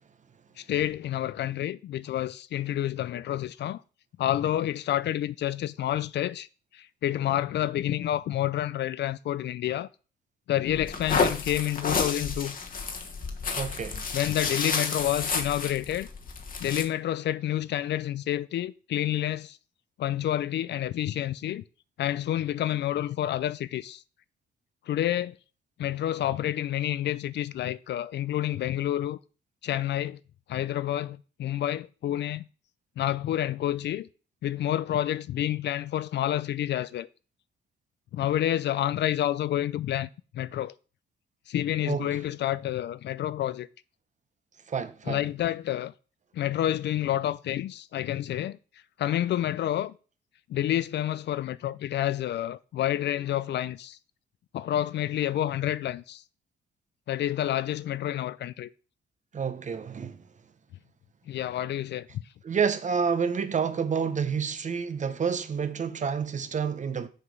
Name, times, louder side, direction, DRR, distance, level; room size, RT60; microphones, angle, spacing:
voice 1, 0.6-3.8 4.2-6.5 6.7-9.9 10.5-12.6 14.1-16.1 16.6-19.6 20.0-21.6 22.0-24.0 24.9-25.3 25.8-29.2 29.6-30.2 30.5-32.4 33.0-34.1 34.4-37.1 38.1-40.1 40.3-40.7 41.5-43.7 45.1-45.9 46.3-48.6 49.0-49.9 50.5-54.0 54.5-56.2 57.1-58.7 61.3-62.1, left 12 dB, 60° left, 0.4 m, -29 dB
sound 1, 10.7-16.8, left 4 dB, 45° left, 1.3 m, -30 dB
voice 2, 13.6-14.1 41.9-42.2 44.7-45.2 59.3-60.2 62.4-67.1, right 6 dB, 40° right, 0.8 m, -29 dB
6.6 x 4.8 x 5.3 m
cardioid pair, 90°, 20 cm